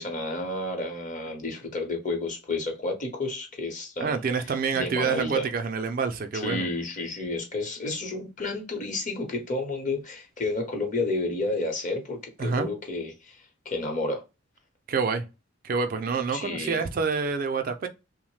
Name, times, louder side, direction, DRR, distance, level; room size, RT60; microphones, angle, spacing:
voice 1, 0.0-5.5 6.3-14.2 16.3-16.8, left 2 dB, 40° left, 0.8 m, -31 dB
voice 2, 4.0-6.7 12.4-12.7 14.9-15.3 15.6-17.9, right 5 dB, 45° right, 0.3 m, -27 dB
3.0 x 2.1 x 3.1 m
head